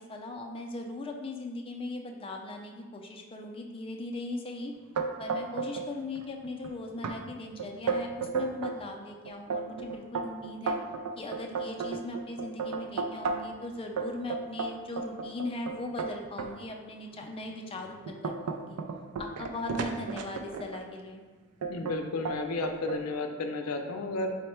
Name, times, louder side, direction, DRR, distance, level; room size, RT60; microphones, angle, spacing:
voice 1, 0.1-4.7 5.2-10.8 11.2-18.8 19.2-21.2, left 2 dB, 25° left, 3 dB, 0.4 m, -39 dB
sound 1, 5.0-5.9 6.2-6.7 7.0-7.2 7.6-8.8 9.3-13.6 14.0-16.5 17.1-17.3 17.8-20.8 21.6-22.0 22.3-23.0, right 4 dB, 90° right, 0.4 m, -33 dB
voice 2, 21.7-24.4, left 2 dB, 85° left, 5 dB, 0.5 m, -32 dB
4.3 x 2.1 x 4.3 m, 1.3 s
head